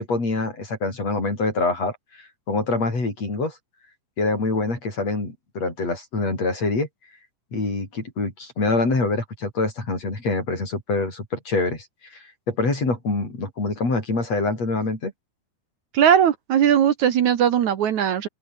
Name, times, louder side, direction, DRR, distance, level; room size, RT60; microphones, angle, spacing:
voice 1, 0.0-3.6 4.2-6.9 7.5-15.1, left 3 dB, 50° left, 8.6 m, -25 dB
voice 2, 15.9-18.3, right 9 dB, 65° right, 2.7 m, -19 dB
open air
omnidirectional pair, 3.8 m